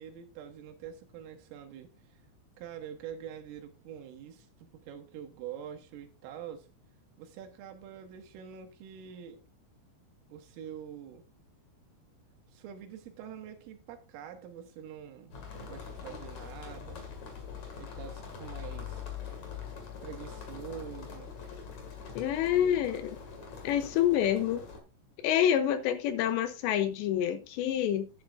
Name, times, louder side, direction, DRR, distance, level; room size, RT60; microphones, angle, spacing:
voice 1, 0.0-2.2 2.6-6.7 7.2-9.4 10.3-11.3 12.5-17.0 17.8-19.1 20.0-21.4 22.6-22.8, right 9 dB, 80° right, 4.0 m, -45 dB
sound 1, 15.3-24.8, left 7 dB, 50° left, 2.5 m, -43 dB
voice 2, 22.2-23.2 23.6-24.6 25.2-28.1, left 10 dB, 80° left, 2.6 m, -27 dB
11.0 x 10.0 x 2.5 m
omnidirectional pair, 5.8 m